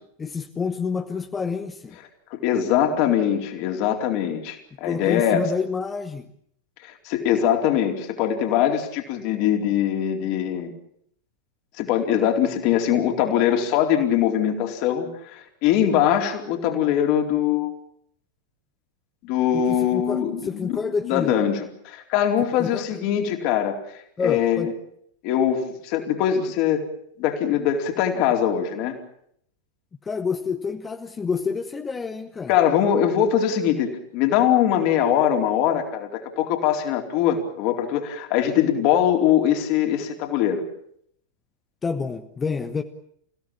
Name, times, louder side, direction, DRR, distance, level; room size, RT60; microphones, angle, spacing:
voice 1, 0.2-2.0 4.8-6.3 19.5-21.4 22.6-22.8 24.2-24.7 30.0-32.5 41.8-42.8, left 5 dB, 15° left, 7 dB, 1.3 m, -28 dB
voice 2, 2.3-5.5 6.8-10.7 11.8-17.8 19.2-20.7 21.0-21.5 21.8-23.8 24.2-24.7 25.2-26.9 27.2-29.0 32.5-40.6, left 10 dB, 45° left, 4 dB, 4.1 m, -22 dB
29.5 x 16.5 x 8.8 m, 0.70 s
figure-of-eight pair, 90°, 0 cm